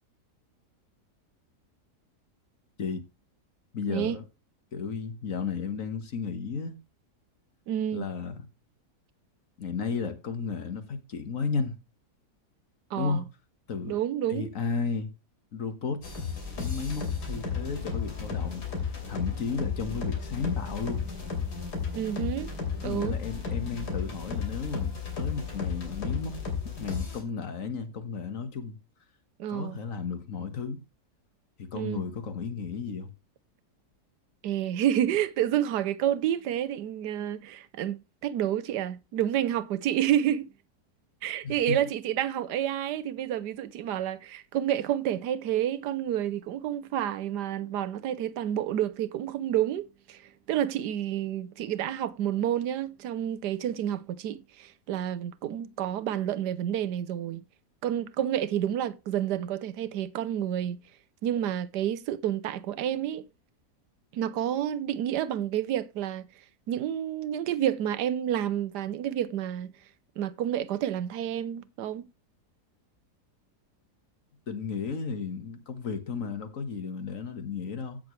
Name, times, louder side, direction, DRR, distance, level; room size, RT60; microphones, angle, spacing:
voice 1, 3.7-4.2 4.7-6.7 7.9-8.5 9.6-11.8 13.0-13.2 13.7-14.0 14.3-15.1 15.5-16.0 16.6-21.0 22.8-26.4 26.6-28.8 29.5-30.8 31.6-33.1 41.4-41.8 74.5-78.0, left 5 dB, 55° left, 1.8 m, -33 dB
voice 2, 7.7-8.1 12.9-13.2 13.9-14.5 21.9-22.5 22.8-23.2 29.4-29.8 31.7-32.1 34.4-40.5 41.2-50.2 50.5-57.4 57.8-60.8 61.2-63.3 64.1-66.3 66.7-69.7 70.2-72.0, right 11 dB, 90° right, 1.3 m, -29 dB
sound 1, 16.0-27.2, left 5 dB, 80° left, 3.6 m, -33 dB
15.5 x 6.6 x 3.2 m
omnidirectional pair, 1.7 m